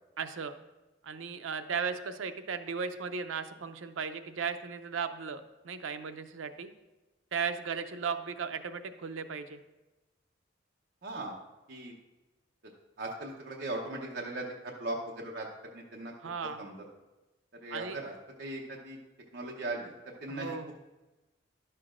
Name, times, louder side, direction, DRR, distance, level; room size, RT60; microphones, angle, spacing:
voice 1, 0.2-0.6 1.0-6.7 7.3-9.6 16.2-16.6 17.7-18.0 20.3-20.7, right 6 dB, 85° right, 10 dB, 0.5 m, -36 dB
voice 2, 11.0-11.4 11.7-12.0 13.0-16.1 16.6-16.7 17.6-18.1 18.4-19.0 19.3-20.6, right 2 dB, 55° right, -2 dB, 0.8 m, -38 dB
11.5 x 6.7 x 2.5 m, 1.1 s
head